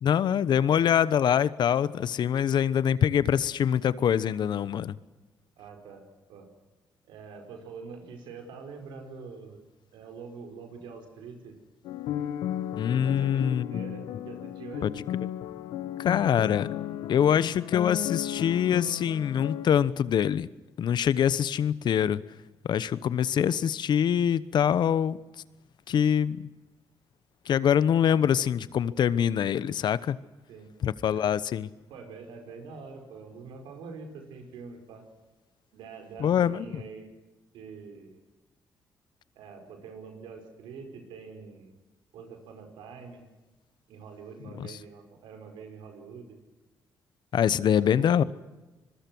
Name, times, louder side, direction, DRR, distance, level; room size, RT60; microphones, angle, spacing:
voice 1, 0.0-5.0 12.8-13.8 14.8-14.9 16.0-16.7 17.1-20.5 20.8-22.2 22.6-25.2 25.9-26.5 27.5-30.2 30.8-31.7 36.2-36.8 44.6-44.8 47.3-48.2, left 9 dB, 65° left, 1.0 m, -24 dB
voice 2, 5.6-6.5 7.0-9.6 9.9-11.6 12.8-15.0 30.5-30.7 31.1-31.2 31.9-35.1 35.7-37.1 37.5-38.2 39.3-41.7 42.1-43.2 43.9-46.4 47.6-48.3, right 5 dB, 90° right, 5.1 m, -45 dB
sound 1, 11.8-19.7, left 11 dB, 90° left, 1.0 m, -34 dB
25.5 x 22.0 x 6.2 m
cardioid pair, 70°, 8 cm